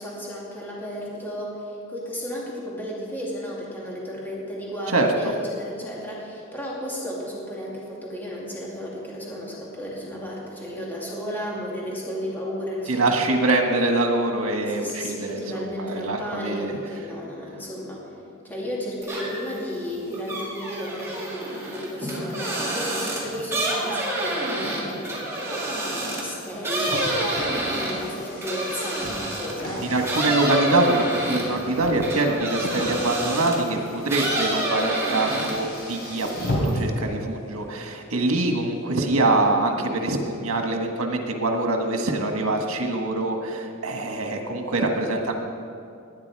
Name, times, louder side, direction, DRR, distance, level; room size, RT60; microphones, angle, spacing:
voice 1, 0.0-13.2 14.7-18.0 18.4-29.9, equal, 10° left, -5 dB, 2.4 m, -33 dB
voice 2, 12.9-16.7 29.8-45.3, right 2 dB, 85° right, 3 dB, 1.7 m, -24 dB
sound 1, 19.0-19.6 19.9-29.6 30.0-33.7 34.1-35.8 36.1-36.7, right 1 dB, 15° right, 2.8 m, -28 dB
Car, 26.4-37.0, equal, 50° left, 4.2 m, -34 dB
19.0 x 9.7 x 4.8 m, 2.5 s
head